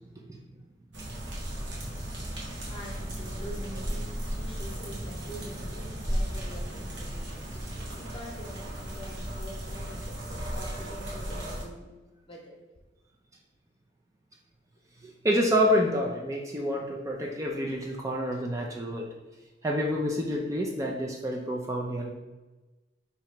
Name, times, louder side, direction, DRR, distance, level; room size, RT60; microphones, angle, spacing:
sound 1, 0.9-11.6, equal, 85° right, 1.0 m, -35 dB
voice 1, 2.4-11.9 12.2-12.6, equal, 30° left, -1 dB, 0.8 m, -45 dB
voice 2, 15.0-19.1 19.6-22.1, equal, 20° right, 0 dB, 0.4 m, -28 dB
3.0 x 2.8 x 4.4 m, 1.2 s
head